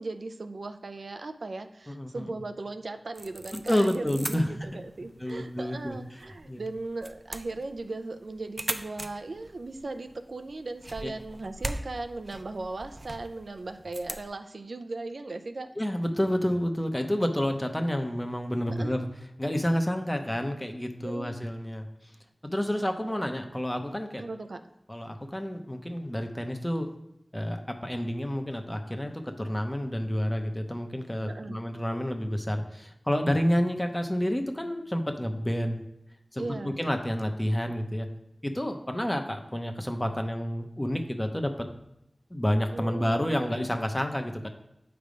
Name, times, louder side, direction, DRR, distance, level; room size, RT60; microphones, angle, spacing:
voice 1, 0.0-15.7 18.8-19.0 21.0-21.3 24.2-24.6 31.2-31.6 36.4-36.8 42.7-43.5, right 2 dB, 90° right, 8 dB, 0.5 m, -38 dB
voice 2, 1.9-2.4 3.5-4.8 5.2-6.0 6.5-6.6 11.0-11.1 15.8-19.1 19.4-22.1 22.4-24.2 24.9-26.9 27.3-35.8 36.3-38.1 38.4-41.7 42.3-44.5, equal, 20° left, 5 dB, 0.8 m, -29 dB
sound 1, 3.1-14.3, right 1 dB, 40° right, 0.6 m, -41 dB
7.8 x 3.4 x 5.1 m, 0.83 s
wide cardioid pair, 40°, 0 cm